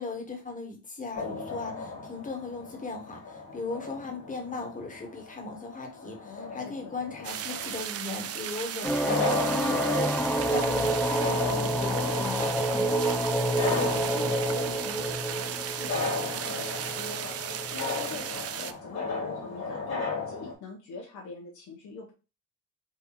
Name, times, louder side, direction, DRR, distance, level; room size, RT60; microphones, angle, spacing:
voice 1, 0.0-13.2, left 3 dB, 25° left, 2 dB, 1.5 m, -37 dB
sound 1, 1.1-20.5, left 4 dB, 55° left, 2.1 m, -36 dB
voice 2, 6.2-7.0 13.4-22.1, left 3 dB, 75° left, -2 dB, 1.2 m, -44 dB
sound 2, 7.2-18.7, right 10 dB, 55° right, 0.5 m, -36 dB
Dark ambient drone sound, 8.8-18.4, right 1 dB, 5° left, 0.5 m, -29 dB
4.3 x 2.6 x 4.2 m, 0.31 s
cardioid pair, 90°, 30 cm